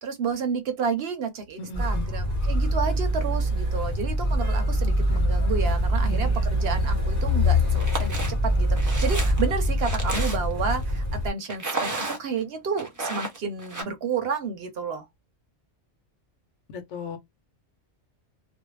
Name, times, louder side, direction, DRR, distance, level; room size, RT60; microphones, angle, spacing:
voice 1, 0.0-15.1, right 5 dB, 60° right, 0.8 m, -31 dB
voice 2, 1.6-2.1 5.6-6.5 16.7-17.2, left 5 dB, 75° left, 1.0 m, -38 dB
Motor vehicle (road), 1.7-11.3, equal, 15° left, 1.0 m, -24 dB
sound 1, 7.7-8.3 8.8-10.6 11.5-12.4 12.8-13.8, right 2 dB, 25° right, 0.4 m, -32 dB
2.4 x 2.0 x 3.1 m
omnidirectional pair, 1.2 m